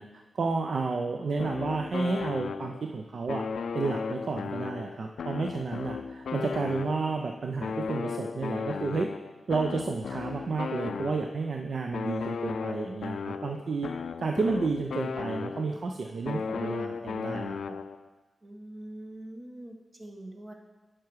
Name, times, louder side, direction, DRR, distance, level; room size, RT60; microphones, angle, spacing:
voice 1, 0.0-3.4 3.7-9.1 9.5-13.9 14.2-17.8, right 4 dB, 70° right, 4 dB, 0.5 m, -31 dB
sound 1, 1.4-2.9 3.3-7.2 7.6-11.5 11.9-15.9 16.3-18.1, left 5 dB, 90° left, 0.3 m, -35 dB
voice 2, 18.4-20.5, right 1 dB, 45° right, 1 dB, 1.4 m, -43 dB
9.3 x 6.0 x 4.7 m, 1.2 s
cardioid pair, 70°, 0 cm